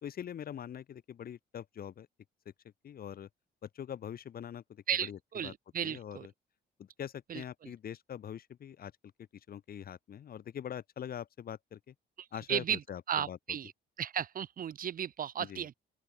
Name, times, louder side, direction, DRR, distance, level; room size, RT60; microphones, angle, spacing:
voice 1, 0.0-2.1 2.8-3.3 3.6-5.5 5.8-6.3 6.8-8.9 9.5-11.9 12.3-13.6 15.4-15.7, left 9 dB, 50° left, 0.7 m, -43 dB
voice 2, 4.9-6.3 7.3-7.7 12.2-12.8 13.1-13.7 14.0-15.7, right 9 dB, 45° right, 0.6 m, -35 dB
open air
cardioid pair, 90°, 20 cm